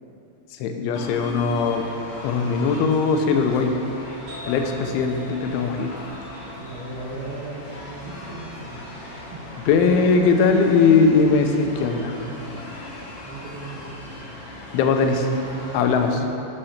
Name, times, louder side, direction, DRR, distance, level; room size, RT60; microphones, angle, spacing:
voice 1, 0.5-1.8 2.2-3.7 4.5-6.1 9.7-12.1 14.7-15.3 15.7-16.2, left 5 dB, 85° left, 4 dB, 3.1 m, -20 dB
sound 1, 0.9-16.1, left 1 dB, 65° left, 2.6 m, -39 dB
sound 2, 4.3-11.7, left 4 dB, 45° right, 2.6 m, -46 dB
voice 2, 6.6-8.8 9.3-9.4 12.3-12.6 13.2-14.0 15.5-16.4, right 3 dB, 75° right, -6 dB, 2.2 m, -37 dB
7.8 x 5.7 x 6.4 m, 2.8 s
omnidirectional pair, 5.3 m